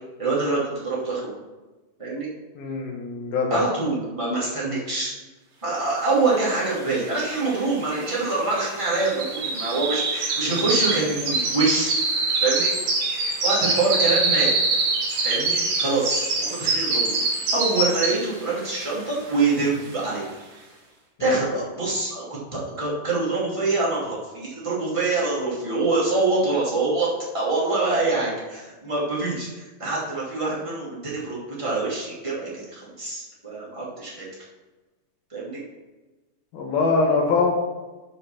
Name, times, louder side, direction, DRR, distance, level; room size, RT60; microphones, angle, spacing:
voice 1, 0.2-1.4 2.0-2.3 3.5-5.1 5.6-12.0 12.4-12.7 13.4-14.5 15.2-17.2 17.5-20.2 21.2-27.1 27.3-34.3 35.3-35.6, right 3 dB, 10° right, -7 dB, 1.9 m, -25 dB
voice 2, 2.6-3.6 10.5-10.6 21.2-21.4 36.5-37.5, left 4 dB, 80° left, -1 dB, 3.0 m, -23 dB
sound 1, 6.7-6.8 7.0-18.4 18.8-19.1 19.6-19.7, right 3 dB, 75° right, 4.2 m, -25 dB
8.3 x 5.1 x 5.8 m, 1.2 s
omnidirectional pair, 4.2 m